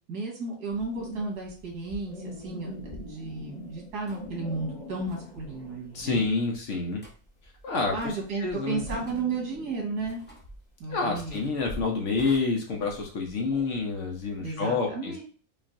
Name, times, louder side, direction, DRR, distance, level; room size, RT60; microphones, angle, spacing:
voice 1, 0.1-6.2 7.9-10.2 10.8-11.5 14.4-15.2, right 3 dB, 85° right, -1 dB, 1.9 m, -33 dB
sound 1, 0.7-6.3 6.5-14.4, left 1 dB, 30° left, 1.0 m, -42 dB
sound 2, 2.3-2.5 4.1-4.3 5.0-5.3 6.1-6.5 7.0-7.1 8.0-8.4 8.8-9.3 10.0-10.5 11.1-11.6 12.2-12.4, equal, 10° left, 0.6 m, -50 dB
voice 2, 5.9-7.0 7.6-8.8 10.9-15.2, left 4 dB, 60° left, 1 dB, 0.8 m, -28 dB
5.1 x 2.4 x 2.5 m, 0.42 s
omnidirectional pair, 1.7 m